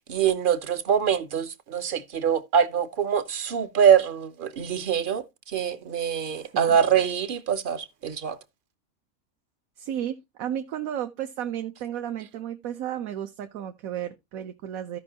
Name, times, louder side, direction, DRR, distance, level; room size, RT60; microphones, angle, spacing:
voice 1, 0.0-5.2 5.5-8.4, right 8 dB, 50° right, 0.6 m, -24 dB
voice 2, 9.8-15.0, right 10 dB, 75° right, 1.1 m, -33 dB
15.0 x 5.3 x 2.7 m
omnidirectional pair, 1.5 m